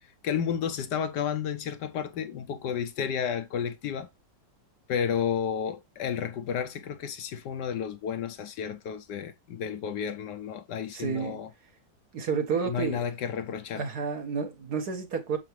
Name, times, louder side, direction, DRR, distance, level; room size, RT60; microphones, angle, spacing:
voice 1, 0.2-4.1 4.9-11.5 12.7-13.8, left 8 dB, 70° left, 1.2 m, -32 dB
voice 2, 10.9-11.4 12.1-13.0 13.7-15.4, right 6 dB, 60° right, 1.7 m, -30 dB
6.8 x 5.8 x 3.1 m
omnidirectional pair, 2.0 m